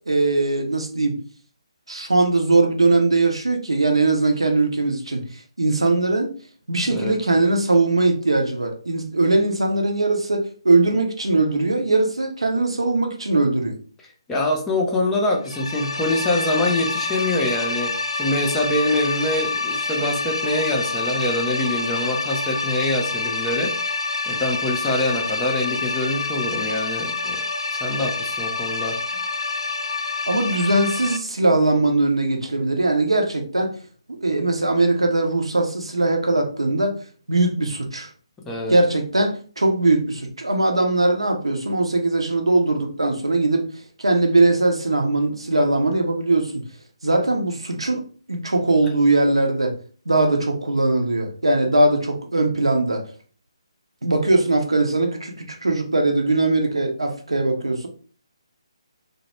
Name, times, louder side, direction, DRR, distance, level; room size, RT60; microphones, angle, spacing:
voice 1, 0.1-1.2 1.9-5.2 5.6-6.3 6.7-13.7 30.3-33.7 34.1-36.9 37.3-38.1 38.7-43.7 44.0-46.6 47.0-49.8 50.1-53.0 54.0-57.9, right 2 dB, 70° right, 3 dB, 0.6 m, -20 dB
voice 2, 14.3-23.9 24.3-27.4 27.7-29.0 38.4-38.8, left 1 dB, 10° left, -1 dB, 0.4 m, -24 dB
sound 1, 15.4-31.2, left 3 dB, 75° left, 0.4 m, -27 dB
2.0 x 2.0 x 3.0 m, 0.41 s
figure-of-eight pair, 145°, 3 cm